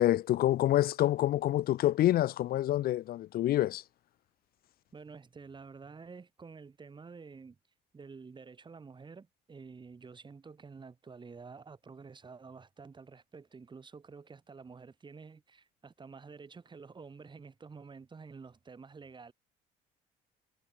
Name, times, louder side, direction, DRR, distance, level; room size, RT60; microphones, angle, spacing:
voice 1, 0.0-3.8, left 13 dB, 65° left, 0.8 m, -27 dB
voice 2, 4.9-7.6 7.9-19.3, right 5 dB, 25° right, 6.7 m, -50 dB
cardioid pair, 110°, 17 cm